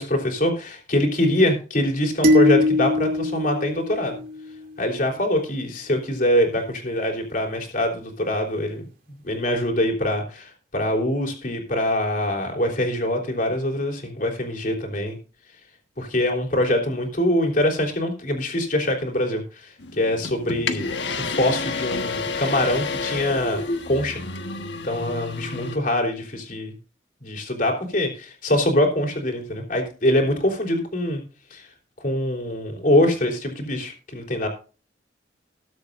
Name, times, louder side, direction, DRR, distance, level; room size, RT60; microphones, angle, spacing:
voice 1, 0.0-4.2 4.8-15.2 16.0-24.2 24.8-26.7 27.2-31.2 31.5-31.6 32.0-34.5, left 1 dB, 50° left, 2 dB, 3.5 m, -24 dB
sound 1, 2.2-4.7, left 2 dB, 50° right, 2.8 m, -21 dB
sound 2, 19.8-25.8, left 4 dB, 75° left, 1.4 m, -30 dB
20.0 x 7.8 x 2.6 m, 0.35 s
head